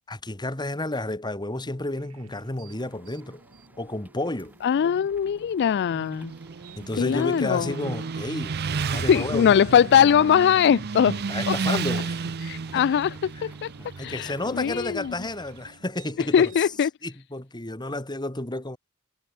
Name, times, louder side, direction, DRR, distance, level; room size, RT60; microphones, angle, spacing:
voice 1, 0.1-3.4 3.8-4.5 6.8-9.6 11.1-12.4 12.7-12.8 13.4-13.5 13.8-16.7 17.0-18.8, left 1 dB, 20° left, 2.4 m, -32 dB
sound 1, 1.5-16.8, right 2 dB, 85° right, 5.8 m, -53 dB
Rain, 2.7-15.7, right 1 dB, 10° right, 4.3 m, -55 dB
voice 2, 4.6-6.3 7.0-7.7 8.9-11.2 11.5-11.8 12.4-13.7 14.0-15.1 16.3-16.9, left 8 dB, 50° left, 0.3 m, -21 dB
Motorcycle, 5.8-15.6, right 5 dB, 50° right, 0.6 m, -32 dB
head